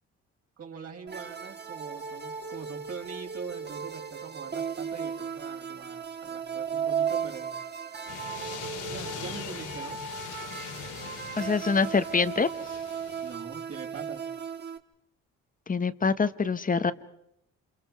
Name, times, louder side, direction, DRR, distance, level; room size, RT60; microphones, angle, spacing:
voice 1, 0.6-7.5 8.9-10.0 13.2-14.2, right 5 dB, 50° right, 0 dB, 5.2 m, -42 dB
sound 1, 1.1-14.8, right 7 dB, 35° right, 1.7 m, -36 dB
sound 2, 8.1-13.4, left 6 dB, 80° left, 3.1 m, -41 dB
voice 2, 11.4-12.5 15.7-16.9, left 5 dB, 25° left, 12 dB, 1.2 m, -25 dB
28.5 x 28.5 x 4.8 m, 0.77 s
cardioid pair, 90°, 30 cm